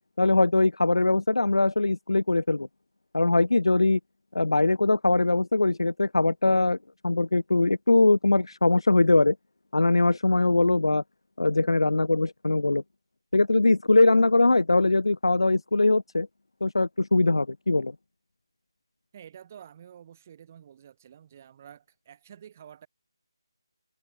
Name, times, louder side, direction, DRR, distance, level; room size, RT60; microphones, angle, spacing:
voice 1, 0.2-2.7 3.1-4.0 4.3-6.8 7.0-9.4 9.7-11.0 11.4-12.8 13.3-16.3 16.6-17.9, left 2 dB, 85° left, 1.0 m, -22 dB
voice 2, 19.1-22.9, right 9 dB, 30° right, 5.4 m, -49 dB
figure-of-eight pair, 165°, 3 cm